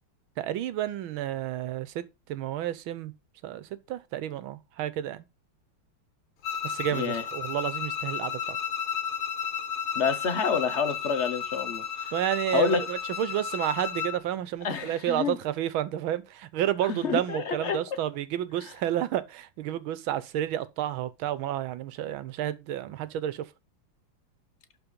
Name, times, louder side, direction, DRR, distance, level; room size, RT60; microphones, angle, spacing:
voice 1, 0.4-2.0 2.3-3.1 3.4-5.3 6.6-8.6 12.1-23.4, right 12 dB, 85° right, 1.6 m, -30 dB
Bowed string instrument, 6.4-14.2, left 7 dB, 85° left, 2.3 m, -33 dB
voice 2, 6.9-7.2 9.9-12.1 12.5-12.8 14.6-15.4 16.9-18.0, left 6 dB, 45° left, 1.1 m, -28 dB
11.5 x 4.5 x 5.2 m
omnidirectional pair, 2.2 m